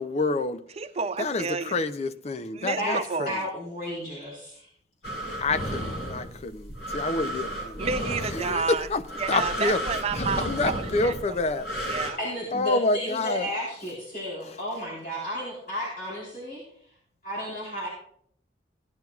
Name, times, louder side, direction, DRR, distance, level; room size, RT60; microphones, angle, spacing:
voice 1, 0.0-0.6 1.2-3.4 5.4-7.9 8.3-9.0 9.3-9.8 10.1-12.0 12.5-13.4, left 3 dB, 35° left, 0.5 m, -28 dB
voice 2, 0.8-1.8 2.5-3.4 7.8-8.9 9.2-12.2, right 5 dB, 35° right, 0.4 m, -31 dB
voice 3, 3.3-4.7 12.2-16.6 17.2-17.9, equal, 50° left, 3.9 m, -33 dB
sound 1, 5.0-12.1, right 1 dB, 70° left, 4.1 m, -33 dB
16.5 x 10.5 x 2.4 m
head